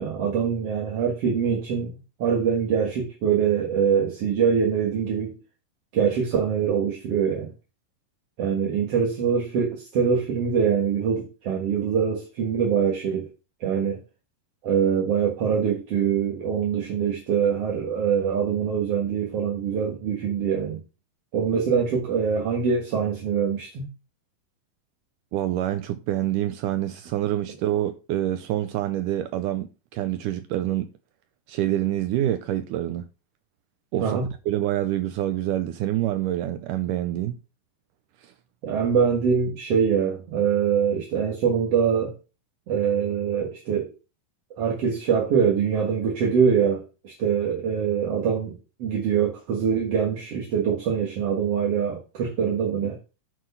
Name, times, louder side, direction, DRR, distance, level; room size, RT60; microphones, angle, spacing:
voice 1, 0.0-1.9 2.2-5.4 5.9-7.5 8.4-13.2 13.6-14.0 14.6-20.8 21.3-23.9 34.0-34.3 38.6-42.1 42.7-43.9 44.6-48.5 48.8-53.0, right 7 dB, 55° right, 2.2 m, -24 dB
voice 2, 25.3-30.9 31.5-33.1 33.9-34.2 34.5-37.4 38.2-38.3, right 13 dB, 80° right, 2.0 m, -26 dB
10.0 x 4.8 x 5.5 m
omnidirectional pair, 4.0 m